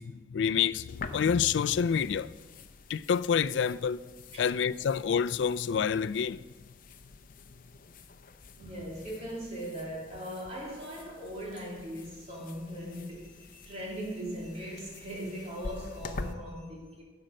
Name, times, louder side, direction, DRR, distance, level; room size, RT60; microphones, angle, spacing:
voice 1, 0.0-2.3 2.9-4.0 4.4-6.4, left 7 dB, 85° left, 0.4 m, -28 dB
sound 1, 0.9-16.3, left 3 dB, 50° left, 0.7 m, -47 dB
voice 2, 8.6-17.0, equal, 40° right, 3.1 m, -39 dB
11.5 x 7.9 x 6.4 m
head